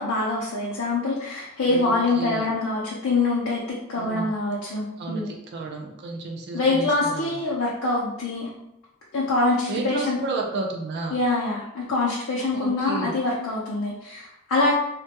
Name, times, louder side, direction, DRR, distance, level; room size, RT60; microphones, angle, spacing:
voice 1, 0.0-5.3 6.5-8.5 9.1-10.2 11.1-14.7, left 2 dB, 65° left, -5 dB, 0.5 m, -25 dB
voice 2, 1.6-2.5 4.0-4.3 5.0-7.3 9.7-11.2 12.5-13.1, right 3 dB, 50° right, 1 dB, 0.3 m, -32 dB
2.2 x 2.1 x 2.7 m, 0.82 s
head